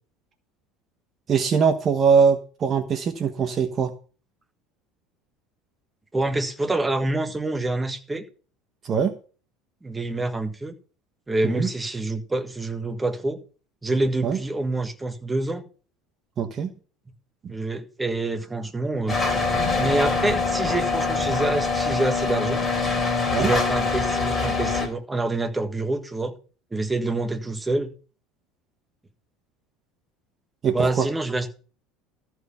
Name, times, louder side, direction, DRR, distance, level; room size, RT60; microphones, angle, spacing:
voice 1, 1.3-3.9 8.8-9.2 11.4-11.7 14.2-14.4 16.4-16.7 17.4-17.5 23.3-23.5 30.6-31.1, right 6 dB, 35° right, 7 dB, 1.0 m, -22 dB
voice 2, 6.1-8.2 9.8-10.7 11.3-13.4 13.8-15.6 17.5-19.2 19.8-22.6 23.4-26.3 26.7-27.9 30.7-31.5, right 2 dB, 15° right, 7 dB, 1.5 m, -26 dB
sound 1, 19.1-24.9, left 4 dB, 10° left, 3.8 m, -24 dB
14.0 x 4.7 x 6.9 m, 0.38 s
supercardioid pair, 110°, 0 cm